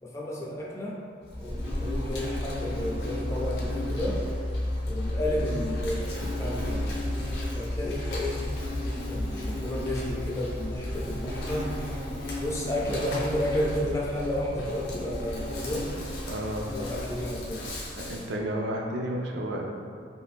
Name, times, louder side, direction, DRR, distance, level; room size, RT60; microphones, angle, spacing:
voice 1, 0.0-1.0 1.4-4.2 4.9-7.0 7.6-8.5 9.1-11.7 12.4-15.9 16.7-17.7, left 1 dB, 15° left, -3 dB, 0.3 m, -32 dB
Insect, 1.3-18.3, left 1 dB, 60° left, 0.6 m, -32 dB
voice 2, 16.3-16.8 18.0-19.6, right 1 dB, 70° right, 0 dB, 0.4 m, -31 dB
2.6 x 2.5 x 3.4 m, 2.2 s
head